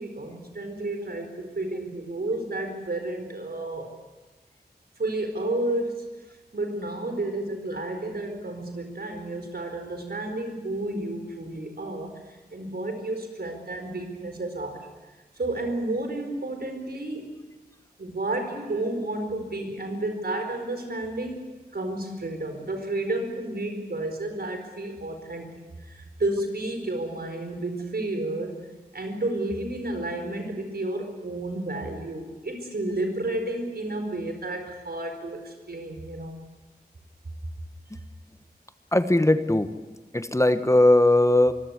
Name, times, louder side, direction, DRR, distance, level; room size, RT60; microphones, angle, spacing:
voice 1, 0.0-3.9 5.0-6.0 6.5-14.9 15.4-17.4 18.0-21.4 21.7-25.5 25.9-28.6 28.9-36.4, right 2 dB, 75° right, 5 dB, 4.7 m, -31 dB
voice 2, 38.9-39.7 40.1-41.5, left 1 dB, 20° left, 10 dB, 1.2 m, -19 dB
24.5 x 15.5 x 9.7 m, 1.2 s
wide cardioid pair, 55°, 16 cm